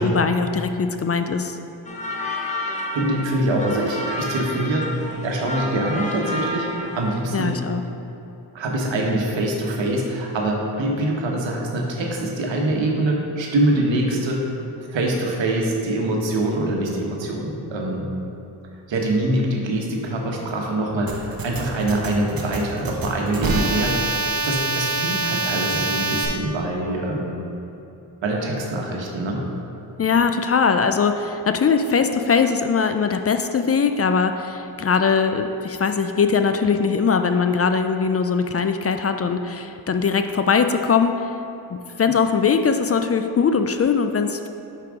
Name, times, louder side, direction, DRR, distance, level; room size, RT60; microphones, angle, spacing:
voice 1, 0.0-1.6 7.3-7.8 30.0-41.3 42.0-44.5, left 5 dB, 35° left, 7 dB, 0.4 m, -21 dB
sound 1, 1.9-7.2, left 1 dB, 15° left, 1.0 m, -30 dB
voice 2, 2.9-4.9 5.2-7.6 8.5-14.5 14.9-18.2 18.9-27.4 28.2-29.4, right 1 dB, 90° right, 0 dB, 1.1 m, -24 dB
sound 2, 21.1-26.3, right 3 dB, 55° right, 1.1 m, -25 dB
5.9 x 4.8 x 5.0 m, 2.9 s
cardioid pair, 70°, 43 cm